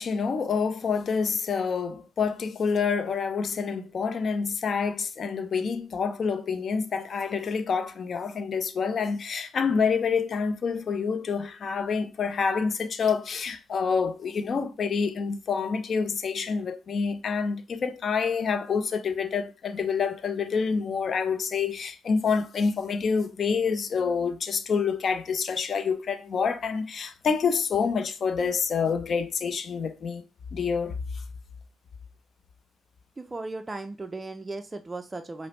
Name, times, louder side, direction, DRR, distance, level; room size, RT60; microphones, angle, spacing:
voice 1, 0.0-30.2 30.5-31.0, left 5 dB, 50° left, 0.5 m, -27 dB
voice 2, 33.2-35.5, right 2 dB, 20° right, 0.4 m, -36 dB
4.8 x 2.0 x 3.0 m
cardioid pair, 90°, 0 cm